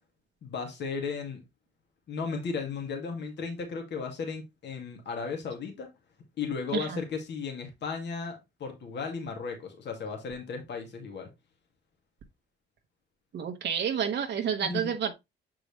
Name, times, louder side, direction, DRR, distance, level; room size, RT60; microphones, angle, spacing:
voice 1, 0.4-1.4 2.1-5.9 6.4-11.3 14.6-14.9, left 5 dB, 60° left, 2.1 m, -35 dB
voice 2, 13.3-15.1, right 8 dB, 60° right, 1.1 m, -29 dB
6.9 x 4.8 x 3.0 m
cardioid pair, 90°, 20 cm